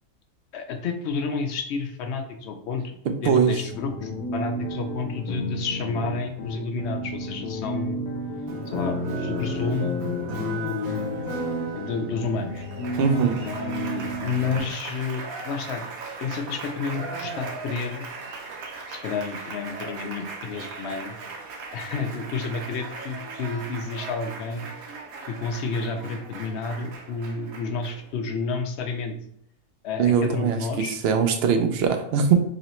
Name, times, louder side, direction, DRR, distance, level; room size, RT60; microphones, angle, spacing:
voice 1, 0.5-2.8 3.1-8.0 8.7-10.0 10.3-11.1 11.8-12.6 13.4-15.8 16.2-18.0 18.9-21.2 21.7-24.7 25.3-29.1 29.8-31.0, left 4 dB, 65° left, 5 dB, 0.7 m, -30 dB
sound 1, 3.7-14.6, left 1 dB, 90° left, 1.1 m, -32 dB
Applause, 8.5-28.1, right 4 dB, 85° right, 1.1 m, -37 dB
voice 2, 13.0-13.4 30.0-32.3, right 7 dB, 65° right, 6 dB, 0.6 m, -21 dB
3.0 x 2.9 x 4.1 m, 0.73 s
omnidirectional pair, 1.4 m